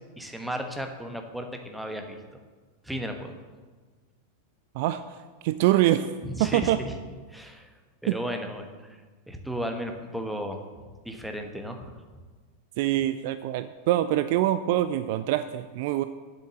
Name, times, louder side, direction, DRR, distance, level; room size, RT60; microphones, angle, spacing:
voice 1, 0.2-2.2 2.8-3.3 6.2-6.9 7.3-7.7 8.0-8.7 9.3-10.6 11.0-11.9, equal, ahead, 4 dB, 1.2 m, -34 dB
voice 2, 5.4-6.1 6.4-6.8 8.1-8.2 12.8-16.0, right 14 dB, 50° right, 12 dB, 0.4 m, -24 dB
7.9 x 7.0 x 7.6 m, 1.4 s
figure-of-eight pair, 90°, 0 cm